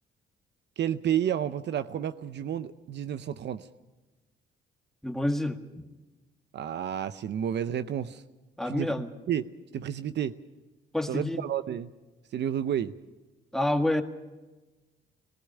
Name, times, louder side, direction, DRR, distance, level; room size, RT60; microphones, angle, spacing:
voice 1, 0.8-3.7 6.5-8.2 8.7-8.9 9.3-10.3 11.1-11.9 12.3-12.9, right 10 dB, 60° right, 13 dB, 0.7 m, -31 dB
voice 2, 5.0-5.6 8.6-9.1 10.9-11.4 13.5-14.0, left 1 dB, ahead, 6 dB, 1.7 m, -27 dB
19.0 x 15.0 x 10.0 m, 1.2 s
cardioid pair, 90°, 20 cm